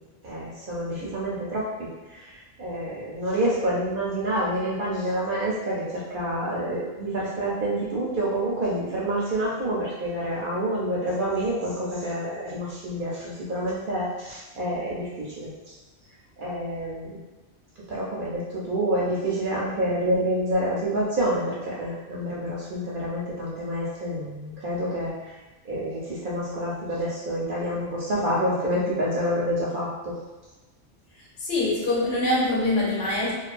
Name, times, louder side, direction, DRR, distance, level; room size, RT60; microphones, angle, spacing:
voice 1, 0.2-15.8 16.4-17.2 17.9-25.4 25.6-30.1, right 1 dB, 60° right, -5 dB, 0.6 m, -28 dB
voice 2, 31.4-33.3, left 2 dB, 65° left, -5 dB, 0.9 m, -24 dB
2.3 x 2.3 x 2.4 m, 1.2 s
omnidirectional pair, 1.2 m